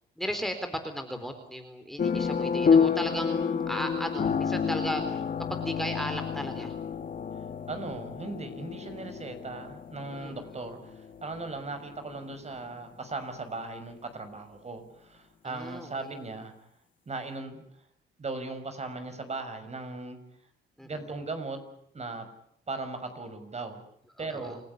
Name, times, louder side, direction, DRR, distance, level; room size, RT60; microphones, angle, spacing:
voice 1, 0.2-5.2 5.5-6.7 10.1-10.4 15.4-16.1 20.8-21.0 24.2-24.6, equal, ahead, 7 dB, 3.9 m, -36 dB
sound 1, 2.0-12.7, left 6 dB, 45° left, 1.4 m, -29 dB
voice 2, 7.7-16.5 17.1-17.6 18.2-20.2 20.8-21.6 21.9-22.3 22.7-23.8 24.2-24.6, right 3 dB, 35° right, 8 dB, 6.1 m, -38 dB
28.5 x 16.0 x 9.7 m, 0.71 s
cardioid pair, 90°, 20 cm